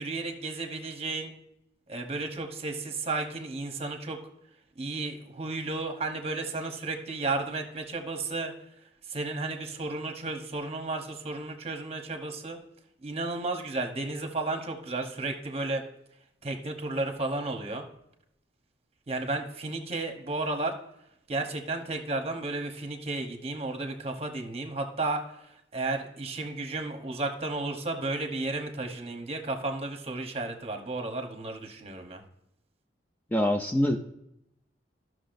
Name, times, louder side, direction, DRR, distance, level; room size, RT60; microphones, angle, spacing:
voice 1, 0.0-1.3 1.9-4.2 4.8-8.5 9.1-12.6 13.0-15.8 16.4-17.9 19.1-20.7 21.3-25.2 25.7-32.2, right 2 dB, 35° right, 5 dB, 0.9 m, -33 dB
voice 2, 33.3-34.0, left 1 dB, 10° left, 4 dB, 0.4 m, -24 dB
13.0 x 6.2 x 2.6 m, 0.79 s
head